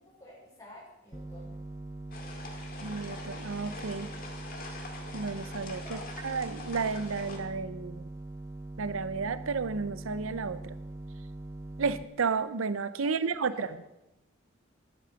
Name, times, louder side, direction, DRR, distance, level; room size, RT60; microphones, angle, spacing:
voice 1, 0.2-1.5 5.8-6.1 13.0-13.7, equal, 15° left, -5 dB, 6.0 m, -48 dB
sound 1, 1.1-12.0, right 2 dB, 15° right, 0.7 m, -42 dB
sound 2, 2.1-7.4, left 2 dB, 45° left, 2.1 m, -44 dB
voice 2, 2.8-4.1 5.1-8.1 8.8-10.7 11.8-13.7, right 5 dB, 85° right, 14 dB, 0.6 m, -32 dB
10.5 x 9.3 x 7.0 m, 0.90 s
head